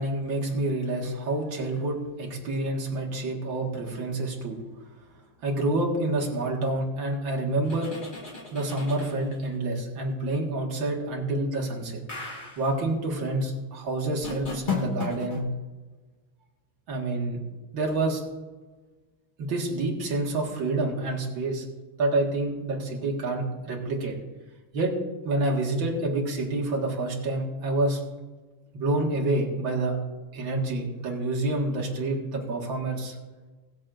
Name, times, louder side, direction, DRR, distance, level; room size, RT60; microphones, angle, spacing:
voice 1, 0.0-4.6 5.4-7.9 8.5-12.0 12.6-15.4 16.9-17.4 17.7-18.2 19.4-21.6 22.0-24.1 24.7-25.0 25.2-28.0 28.7-30.0 30.3-33.2, right 2 dB, 75° right, -1 dB, 2.5 m, -28 dB
sound 1, 7.6-9.5 12.1-12.7 14.2-15.4, left 5 dB, 25° left, 2.0 m, -34 dB
21.5 x 7.6 x 2.6 m, 1.2 s
omnidirectional pair, 2.2 m